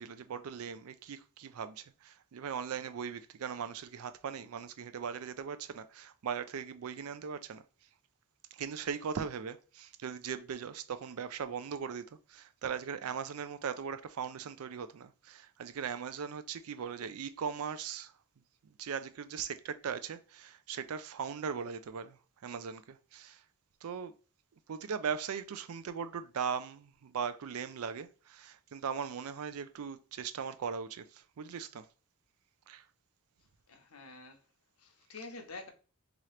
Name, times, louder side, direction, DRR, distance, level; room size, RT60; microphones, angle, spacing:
voice 1, 0.0-7.6 8.5-18.1 18.6-23.4 23.8-24.1 24.7-31.9 32.7-32.9, right 6 dB, 75° right, 0.4 m, -39 dB
voice 2, 33.7-34.4 34.8-35.7, left 3 dB, 75° left, 0.8 m, -47 dB
3.7 x 2.9 x 3.2 m
head